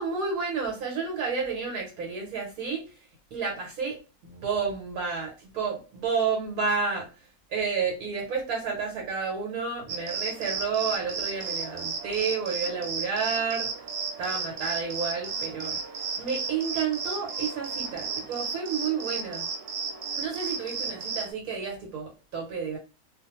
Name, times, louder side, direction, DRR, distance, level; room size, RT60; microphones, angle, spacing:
voice 1, 0.0-3.0 3.3-7.1 7.5-13.7 14.2-15.8 16.2-19.5 20.2-22.8, right 5 dB, 75° right, 0 dB, 1.1 m, -30 dB
sound 1, 9.9-21.3, right 5 dB, 90° right, 1.1 m, -34 dB
2.3 x 2.2 x 2.9 m, 0.32 s
omnidirectional pair, 1.6 m